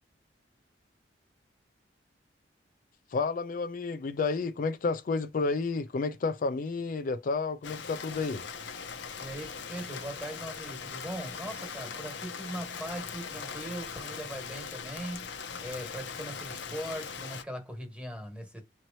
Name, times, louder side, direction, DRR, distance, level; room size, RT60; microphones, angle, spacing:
voice 1, 3.1-8.4, left 4 dB, 50° left, 0.4 m, -31 dB
Rain, 7.6-17.4, left 6 dB, 75° left, 0.7 m, -40 dB
voice 2, 9.2-15.3 15.6-18.6, equal, 5° right, 1.5 m, -40 dB
4.2 x 3.0 x 2.7 m
head